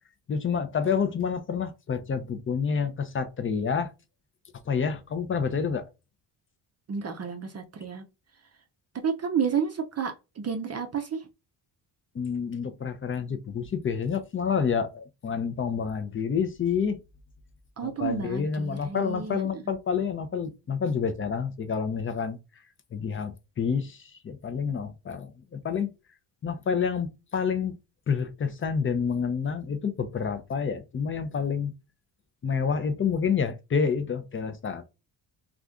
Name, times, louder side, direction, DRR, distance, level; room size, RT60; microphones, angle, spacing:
voice 1, 0.3-3.9 4.7-5.9 12.1-17.0 17.8-22.4 22.9-25.9 26.4-27.8 28.1-31.7 32.4-34.8, left 6 dB, 30° left, 0.5 m, -28 dB
voice 2, 6.9-8.0 8.9-11.3 17.8-19.7, right 6 dB, 35° right, 0.5 m, -31 dB
2.5 x 2.4 x 3.5 m
cardioid pair, 75°, 45 cm